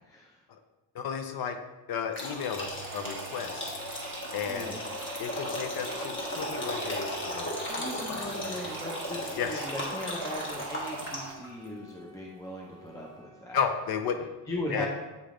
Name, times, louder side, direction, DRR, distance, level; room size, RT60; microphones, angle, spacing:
voice 1, 0.9-1.6 1.9-3.8 4.3-4.7 5.2-7.5 7.8-8.3 9.4-9.7 13.5-14.3 14.7-14.9, left 7 dB, 55° left, 6 dB, 0.6 m, -33 dB
sound 1, 2.1-11.5, left 1 dB, 25° left, 1.3 m, -36 dB
sound 2, 2.6-11.3, right 9 dB, 60° right, 0.5 m, -46 dB
voice 2, 7.6-13.6 14.5-14.9, left 1 dB, 10° left, -2 dB, 0.5 m, -38 dB
Wind instrument woodwind instrument, 9.5-13.5, right 2 dB, 15° right, 1.6 m, -53 dB
8.3 x 3.3 x 3.7 m, 1.2 s
cardioid pair, 145°, 44 cm